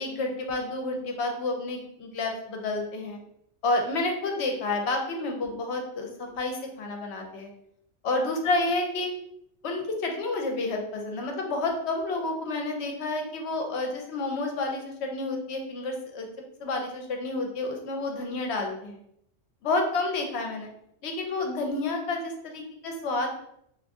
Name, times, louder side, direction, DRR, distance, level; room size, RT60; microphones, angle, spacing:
voice 1, 0.0-3.2 3.6-7.5 8.0-9.1 9.6-16.3 16.6-19.0 19.6-20.7 21.0-23.3, left 2 dB, 65° left, 3 dB, 0.9 m, -30 dB
2.5 x 2.5 x 3.5 m, 0.73 s
omnidirectional pair, 1.3 m